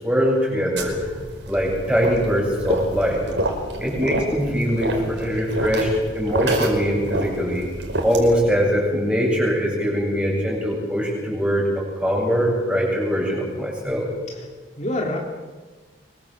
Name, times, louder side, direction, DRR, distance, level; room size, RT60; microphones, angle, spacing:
voice 1, 0.0-1.1 1.5-3.2 3.8-7.6 8.0-11.6 12.0-14.1, equal, 5° right, -1 dB, 7.8 m, -22 dB
sound 1, 0.8-8.5, right 1 dB, 75° right, 5.2 m, -28 dB
voice 2, 3.8-4.3 14.3-14.4 14.8-15.2, left 1 dB, 40° left, -1 dB, 3.5 m, -28 dB
25.0 x 23.0 x 7.5 m, 1.3 s
head